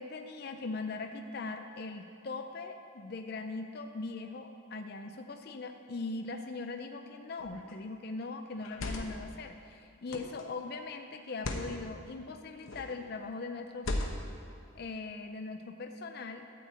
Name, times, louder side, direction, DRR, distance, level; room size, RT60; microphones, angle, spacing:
voice 1, 0.0-14.0 14.7-16.5, left 3 dB, 50° left, 6 dB, 0.5 m, -40 dB
sound 1, 7.4-7.7 8.5-9.3 10.1-10.4 11.3-11.7 12.6-13.0 13.8-14.4, left 2 dB, 90° left, 1.0 m, -37 dB
12.5 x 4.6 x 8.0 m, 2.5 s
head